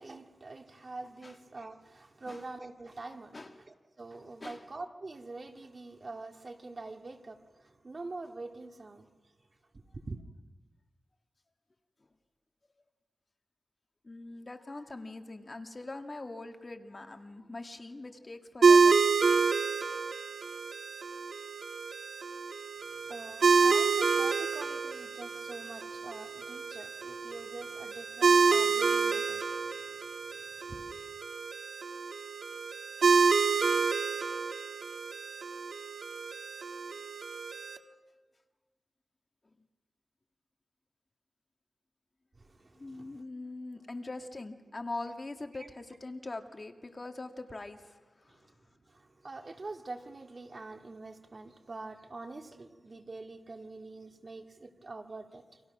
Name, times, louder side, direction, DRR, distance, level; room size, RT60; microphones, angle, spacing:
voice 1, 0.0-9.1 9.7-10.2 22.8-30.9 42.4-43.2 45.5-45.7 48.3-55.6, right 3 dB, 45° right, 2.0 m, -45 dB
voice 2, 14.0-19.0 42.8-48.0 48.2-48.4, left 2 dB, 35° left, 1.8 m, -42 dB
sound 1, 18.6-37.8, right 5 dB, 75° right, 1.5 m, -28 dB
29.5 x 26.0 x 6.0 m
wide cardioid pair, 80°, 0 cm